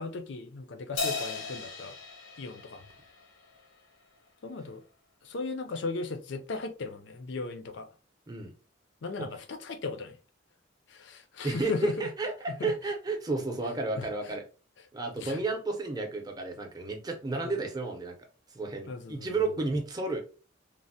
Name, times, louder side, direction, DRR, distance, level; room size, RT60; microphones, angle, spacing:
voice 1, 0.0-2.0 2.4-2.8 4.4-4.8 5.2-7.9 9.0-10.2 10.9-12.1 12.5-12.7 14.0-14.3 15.2-15.4 17.4-17.5 18.9-19.3, left 3 dB, 60° left, 0.4 m, -37 dB
Crash cymbal, 1.0-3.7, left 4 dB, 90° left, 0.7 m, -36 dB
voice 2, 11.4-14.4 14.9-18.1 18.5-20.2, right 3 dB, 20° right, 0.5 m, -32 dB
3.2 x 2.0 x 2.6 m
head